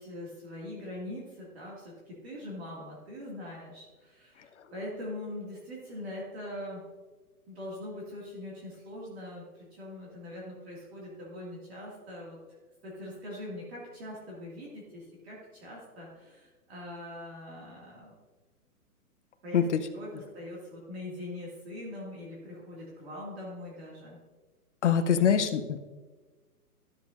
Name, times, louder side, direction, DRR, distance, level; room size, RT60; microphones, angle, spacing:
voice 1, 0.0-6.8 7.5-12.4 12.8-18.2 19.4-19.6 19.9-24.2, left 1 dB, 40° right, -5 dB, 2.2 m, -42 dB
voice 2, 19.5-19.9 24.8-25.8, left 8 dB, 50° left, 9 dB, 0.7 m, -24 dB
13.0 x 7.1 x 2.5 m, 1.3 s
hypercardioid pair, 170°, 46 cm